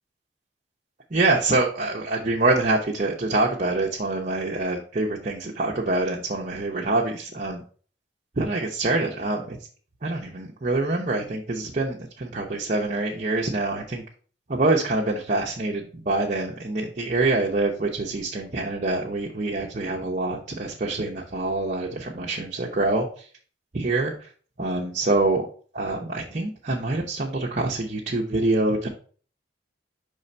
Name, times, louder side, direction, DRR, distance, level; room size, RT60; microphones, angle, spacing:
voice 1, 1.1-7.6 8.4-9.6 10.0-14.0 14.5-23.3 23.7-24.3 24.6-25.4 25.7-28.9, right 2 dB, 40° right, -1 dB, 0.7 m, -25 dB
5.5 x 3.3 x 5.3 m, 0.43 s
head